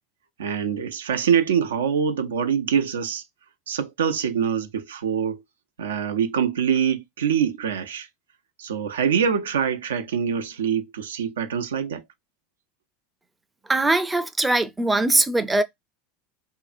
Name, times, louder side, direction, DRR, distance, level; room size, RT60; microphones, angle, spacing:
voice 1, 0.4-3.2 3.7-5.4 5.8-8.1 8.6-12.0, right 7 dB, 85° right, 0.3 m, -24 dB
voice 2, 13.7-15.6, right 2 dB, 10° right, 0.4 m, -21 dB
2.5 x 2.5 x 2.4 m
hypercardioid pair, 90°, 0 cm